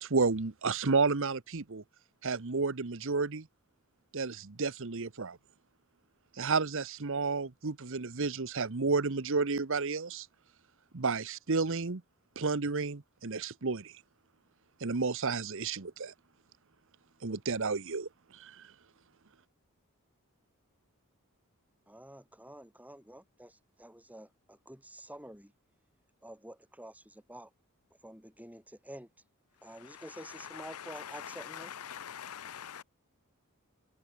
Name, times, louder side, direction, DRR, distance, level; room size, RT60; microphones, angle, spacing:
voice 1, 0.0-1.8 2.2-3.5 4.1-5.4 6.3-10.3 10.9-12.0 12.4-14.0 14.8-16.1 17.2-18.7, right 4 dB, 60° right, 1.0 m, -31 dB
voice 2, 21.9-25.5 26.2-27.5 28.0-29.1 29.6-31.7, right 1 dB, 5° right, 5.6 m, -49 dB
voice 3, 29.8-32.8, left 9 dB, 85° left, 0.7 m, -44 dB
open air
head